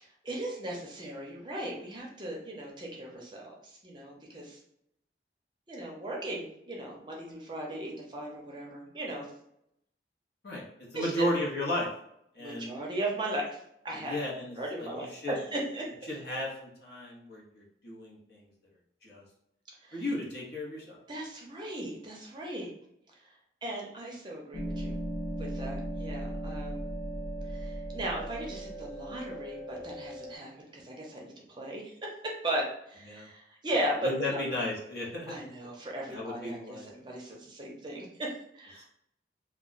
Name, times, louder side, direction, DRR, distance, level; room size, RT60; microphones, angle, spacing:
voice 1, 0.2-4.6 5.7-9.3 10.9-11.3 12.4-13.6 13.8-14.2 14.6-15.9 19.8-20.0 21.1-22.7 23.6-25.0 25.4-26.9 27.5-34.5 35.3-38.9, right 1 dB, 25° right, -1 dB, 0.5 m, -37 dB
voice 2, 10.4-11.9 12.3-12.7 14.0-15.3 16.1-18.4 19.0-19.2 19.9-21.0 33.1-33.3 34.0-35.7 36.1-36.9, left 1 dB, 65° left, -3 dB, 0.8 m, -34 dB
sound 1, 24.5-30.4, right 1 dB, 30° left, 0.4 m, -37 dB
2.2 x 2.1 x 3.8 m, 0.76 s
head